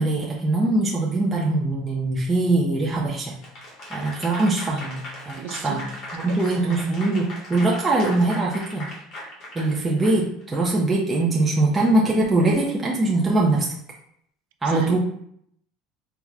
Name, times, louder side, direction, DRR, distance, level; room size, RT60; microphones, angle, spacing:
voice 1, 0.0-3.4 3.9-5.0 5.3-5.9 6.1-8.9 9.5-13.7 14.6-15.0, right 2 dB, 10° right, -3 dB, 0.4 m, -22 dB
Applause / Crowd, 3.4-10.6, left 1 dB, 35° left, 0.9 m, -38 dB
voice 2, 5.3-5.8 6.3-6.9 14.6-15.0, right 7 dB, 80° right, 6 dB, 0.5 m, -36 dB
4.6 x 2.1 x 3.6 m, 0.69 s
cardioid pair, 180°, 0 cm